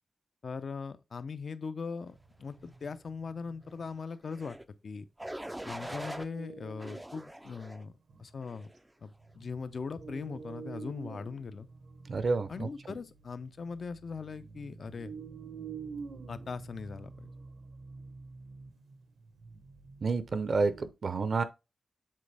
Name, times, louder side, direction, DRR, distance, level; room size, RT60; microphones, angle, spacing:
voice 1, 0.4-4.6 4.8-5.1 5.6-7.9 8.2-8.7 9.0-11.7 12.5-15.1 16.3-17.3, left 5 dB, 60° left, 0.6 m, -40 dB
sound 1, 2.1-4.0 5.7-7.1 7.5-7.6 8.1-8.6 9.1-20.9, right 5 dB, 85° right, 1.0 m, -48 dB
sound 2, 4.3-4.6 5.2-6.3 6.8-7.8 8.4-8.8, right 1 dB, 10° right, 0.4 m, -42 dB
voice 2, 12.1-12.7 20.0-21.4, right 4 dB, 55° right, 0.6 m, -29 dB
7.5 x 4.1 x 3.4 m
wide cardioid pair, 150°, 0 cm